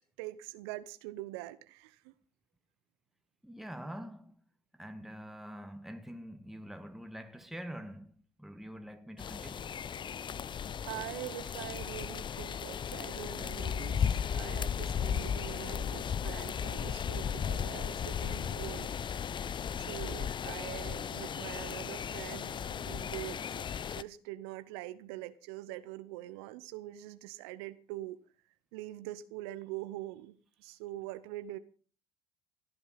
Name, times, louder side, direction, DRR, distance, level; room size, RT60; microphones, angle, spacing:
voice 1, 0.2-2.1 10.9-18.9 19.7-23.6 23.9-28.2 28.7-31.6, right 16 dB, 80° right, 0.8 m, -44 dB
voice 2, 3.4-4.3 4.7-9.7, equal, ahead, 1.5 m, -45 dB
sound 1, 9.2-24.0, left 8 dB, 35° left, 0.7 m, -36 dB
17.5 x 11.0 x 5.7 m
hypercardioid pair, 75°, 13 cm